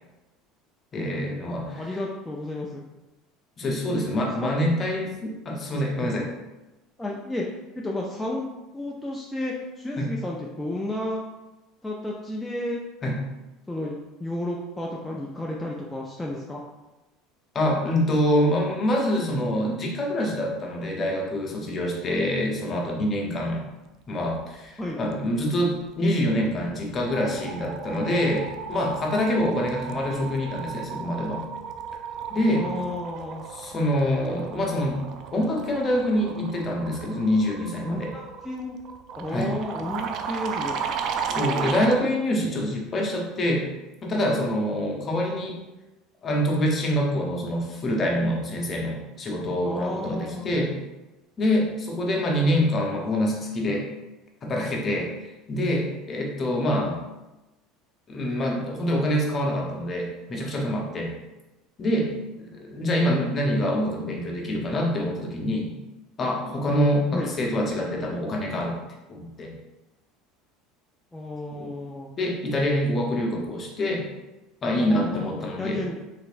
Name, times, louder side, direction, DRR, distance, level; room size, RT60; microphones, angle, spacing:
voice 1, 0.9-1.9 3.6-6.3 10.0-10.1 13.0-13.2 17.5-23.6 24.1-31.4 32.3-32.7 33.5-35.0 35.3-38.1 39.3-39.5 41.3-43.7 44.0-45.6 46.2-50.7 51.4-53.9 54.4-55.1 55.5-57.0 58.1-61.1 61.8-62.1 62.4-65.7 66.2-68.7 69.1-69.5 71.6-71.7 72.2-74.0 74.6-75.8, equal, 35° left, 0 dB, 0.8 m, -25 dB
voice 2, 1.7-2.8 4.4-4.6 7.0-7.5 7.7-11.2 11.8-12.8 13.7-16.6 23.5-23.6 24.8-25.0 32.5-33.4 37.8-38.8 39.2-40.8 42.5-42.6 45.1-45.2 49.6-50.7 67.1-67.3 71.1-72.1 74.8-76.0, left 1 dB, 10° left, -3 dB, 0.4 m, -32 dB
sound 1, 26.2-26.5 26.8-42.0, right 6 dB, 55° right, 0.3 m, -35 dB
3.3 x 3.0 x 2.5 m, 1.0 s
supercardioid pair, 100°, 0 cm